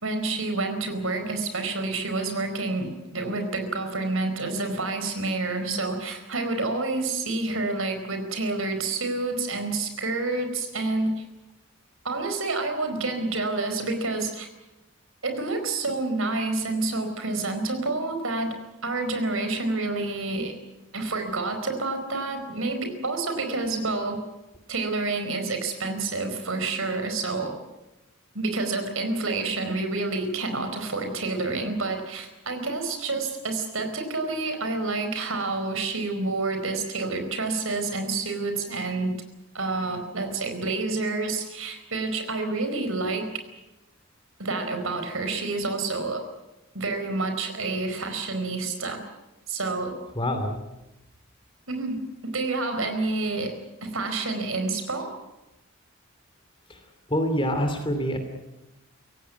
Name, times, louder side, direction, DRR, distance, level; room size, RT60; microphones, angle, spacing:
voice 1, 0.0-11.2 12.0-14.5 15.2-20.5 20.9-24.2 24.7-27.5 28.3-39.1 39.5-43.3 44.4-46.2 46.7-49.0 49.5-50.0 51.7-53.5 53.8-55.2, right 3 dB, 70° right, 6 dB, 4.5 m, -28 dB
voice 2, 50.2-50.6 56.7-56.8 57.1-58.2, equal, 25° left, 7 dB, 2.8 m, -26 dB
24.5 x 17.5 x 9.5 m, 0.98 s
head